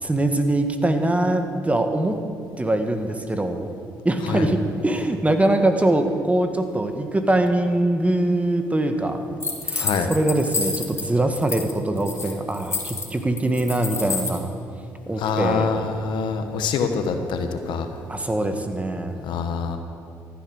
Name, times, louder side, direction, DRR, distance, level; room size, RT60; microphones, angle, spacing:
voice 1, 0.0-2.2 2.6-3.7 4.0-9.4 9.6-14.5 15.1-15.7 18.1-19.2, right 1 dB, 15° right, 6 dB, 1.4 m, -23 dB
sound 1, 9.4-11.0 11.4-11.7 12.0-14.4, left 4 dB, 35° left, 2.3 m, -29 dB
voice 2, 9.8-10.1 15.2-17.9 19.2-19.8, left 5 dB, 70° left, 6 dB, 1.2 m, -25 dB
14.5 x 9.9 x 6.3 m, 2.4 s
supercardioid pair, 60°, 8 cm